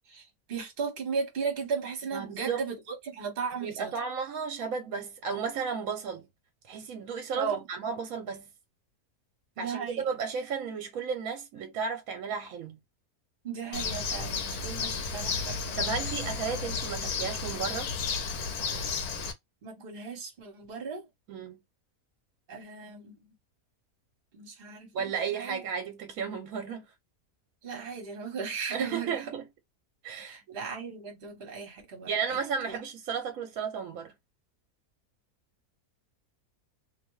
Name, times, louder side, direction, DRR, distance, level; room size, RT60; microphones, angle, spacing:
voice 1, 0.1-2.8 3.0-3.9 7.3-7.6 9.6-10.0 13.4-16.0 19.6-21.1 22.5-23.3 24.3-25.6 27.6-29.3 30.2-32.4 32.7-32.8, right 5 dB, 40° right, 1.0 m, -36 dB
voice 2, 2.1-2.6 3.6-6.3 6.7-8.5 9.6-12.8 15.8-17.9 21.3-21.6 24.9-26.8 28.7-29.4 30.0-30.6 32.1-34.1, right 6 dB, 70° right, 1.0 m, -34 dB
Bird, 13.7-19.3, left 5 dB, 80° left, 1.2 m, -32 dB
2.7 x 2.2 x 3.0 m
omnidirectional pair, 1.6 m